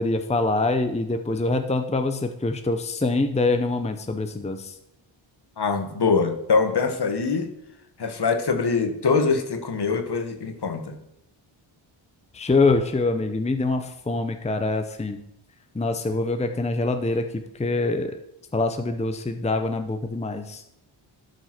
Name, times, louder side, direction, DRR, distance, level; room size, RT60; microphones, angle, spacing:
voice 1, 0.0-4.7 12.3-15.2 15.7-18.2 18.5-20.6, left 3 dB, 15° left, 7 dB, 0.7 m, -25 dB
voice 2, 5.6-7.5 8.0-11.0, left 4 dB, 55° left, 6 dB, 1.4 m, -23 dB
12.0 x 5.3 x 6.0 m, 0.79 s
cardioid pair, 80°, 48 cm